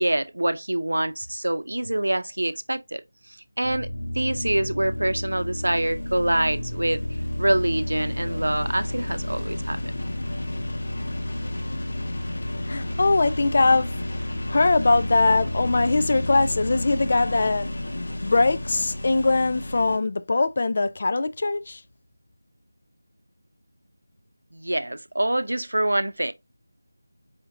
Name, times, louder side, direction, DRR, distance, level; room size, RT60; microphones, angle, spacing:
voice 1, 0.0-3.0 3.6-7.0 7.4-9.8 24.5-26.3, right 1 dB, 75° right, 0.6 m, -25 dB
sound 1, 3.6-20.0, left 1 dB, 60° left, 1.1 m, -31 dB
voice 2, 12.6-13.9 14.5-17.7 18.2-21.8, left 3 dB, 40° left, 0.3 m, -21 dB
4.9 x 2.9 x 2.7 m
figure-of-eight pair, 165°, 0 cm